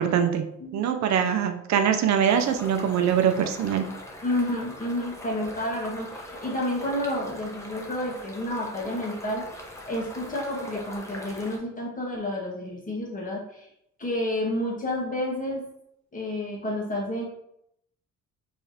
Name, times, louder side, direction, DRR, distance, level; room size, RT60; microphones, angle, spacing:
voice 1, 0.0-0.5 0.7-3.9, right 8 dB, 65° right, 7 dB, 0.5 m, -23 dB
sound 1, 2.3-11.6, left 1 dB, 10° left, 0.9 m, -41 dB
voice 2, 4.2-13.7 14.0-15.6 16.1-17.2, left 1 dB, 25° left, -2 dB, 1.4 m, -30 dB
4.6 x 3.3 x 2.8 m, 0.77 s
cardioid pair, 90°, 30 cm